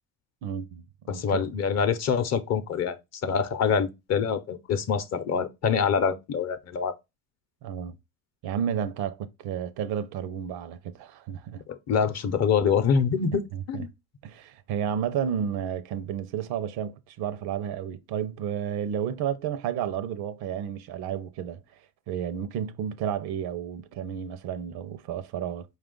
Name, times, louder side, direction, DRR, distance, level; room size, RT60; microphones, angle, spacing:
voice 1, 0.4-1.5 7.6-7.9 8.4-11.6 13.5-13.8 14.2-21.6 22.1-25.6, right 8 dB, 75° right, 0.6 m, -32 dB
voice 2, 1.1-6.9 11.7-13.9, left 6 dB, 40° left, 0.6 m, -25 dB
4.7 x 2.4 x 3.7 m
supercardioid pair, 95°, 38 cm